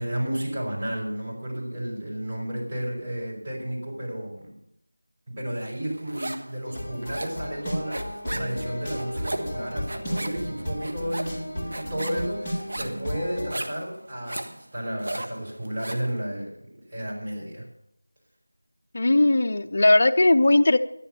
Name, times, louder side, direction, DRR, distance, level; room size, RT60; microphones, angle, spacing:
voice 1, 0.0-4.5 5.3-17.6, equal, 20° right, -7 dB, 5.3 m, -32 dB
sound 1, 5.7-6.5 6.8-16.1, right 1 dB, 55° right, 1.4 m, -36 dB
sound 2, 6.6-13.5, equal, 10° left, 2.2 m, -34 dB
voice 2, 18.9-20.8, left 2 dB, 40° left, 6 dB, 0.7 m, -18 dB
11.5 x 11.0 x 7.0 m, 0.75 s
figure-of-eight pair, 170°, 0 cm